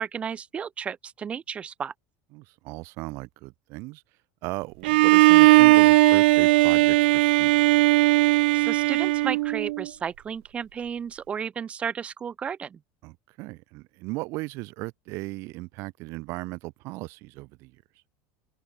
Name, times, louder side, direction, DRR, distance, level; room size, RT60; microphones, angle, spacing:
voice 1, 0.0-1.9 8.5-12.8, right 7 dB, 20° right, 3.4 m, -33 dB
voice 2, 2.3-4.0 4.4-7.8 13.0-17.8, right 23 dB, 50° right, 3.9 m, -37 dB
Bowed string instrument, 4.8-9.9, right 20 dB, 85° right, 0.8 m, -18 dB
open air
supercardioid pair, 155°, 6 cm